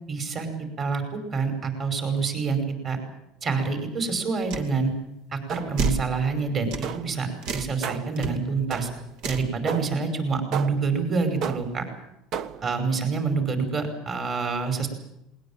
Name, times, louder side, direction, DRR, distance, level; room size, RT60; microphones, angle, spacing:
voice 1, 0.1-0.5 0.8-3.0 3.4-4.9 5.3-8.9 9.3-11.8 12.6-14.9, right 4 dB, 35° right, 7 dB, 5.4 m, -27 dB
sound 1, 4.5-4.7 5.8-6.1 6.7-6.9 7.4-7.7 8.2-8.3 9.2-9.5, right 5 dB, 75° right, 2.5 m, -28 dB
sound 2, 5.5-6.0 6.8-7.2 7.8-8.2 8.7-9.2 9.7-10.1 10.5-11.0 11.4-11.9 12.3-12.8, right 7 dB, 50° right, 1.3 m, -34 dB
20.0 x 20.0 x 9.0 m, 0.83 s
cardioid pair, 130°, 0 cm